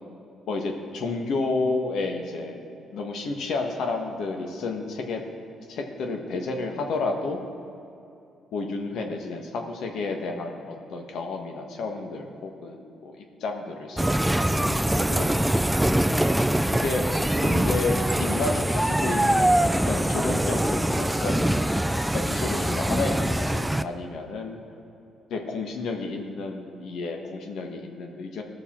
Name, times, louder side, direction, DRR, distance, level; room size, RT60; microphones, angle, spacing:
voice 1, 0.5-2.6 2.9-5.2 5.7-7.4 8.5-14.3 14.5-15.5 16.8-17.0 17.4-21.7 22.1-24.6 25.3-28.4, left 3 dB, 75° left, 3 dB, 1.4 m, -31 dB
sound 1, 14.0-23.8, right 1 dB, 5° right, 0.4 m, -23 dB
18.5 x 6.7 x 4.4 m, 2.8 s
cardioid pair, 90°, 0 cm